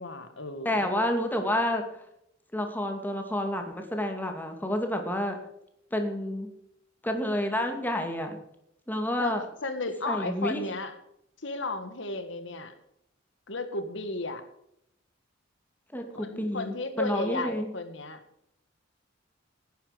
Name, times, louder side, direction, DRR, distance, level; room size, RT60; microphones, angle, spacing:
voice 1, 0.0-0.9 9.2-9.3 9.6-10.9 11.4-12.7 13.5-14.4 16.1-18.2, left 2 dB, 70° left, 9 dB, 1.8 m, -34 dB
voice 2, 0.6-1.8 2.5-5.4 5.9-6.5 7.0-8.3 8.9-9.5 10.0-10.6 15.9-17.7, left 1 dB, 10° left, 4 dB, 2.3 m, -29 dB
17.0 x 10.0 x 5.1 m, 0.78 s
head